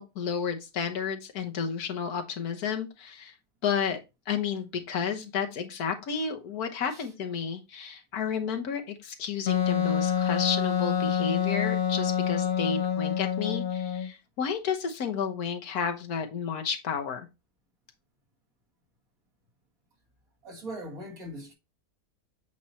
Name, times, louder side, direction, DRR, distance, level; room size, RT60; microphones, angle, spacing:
voice 1, 0.0-3.3 3.6-4.0 4.3-17.3, left 6 dB, 90° left, 1.6 m, -32 dB
Wind instrument woodwind instrument, 9.5-14.1, left 8 dB, 50° left, 0.8 m, -27 dB
voice 2, 20.4-21.5, right 1 dB, 70° right, 2.6 m, -40 dB
8.0 x 4.3 x 2.9 m
omnidirectional pair, 1.5 m